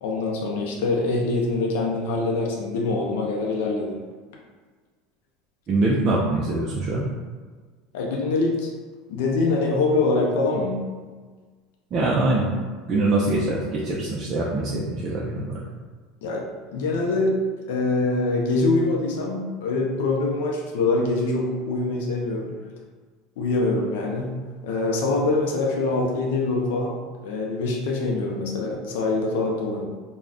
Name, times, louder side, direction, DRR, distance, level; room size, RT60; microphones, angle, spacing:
voice 1, 0.0-4.0 7.9-8.7 9.1-10.8 16.2-16.4 16.7-17.3 17.7-22.5 23.4-24.3 24.6-27.0 27.2-29.8, left 3 dB, 85° left, -1 dB, 0.5 m, -24 dB
voice 2, 5.7-7.0 11.9-12.5 12.9-15.6, right 2 dB, 35° right, -5 dB, 0.4 m, -23 dB
2.4 x 2.1 x 3.5 m, 1.5 s
supercardioid pair, 140°, 0 cm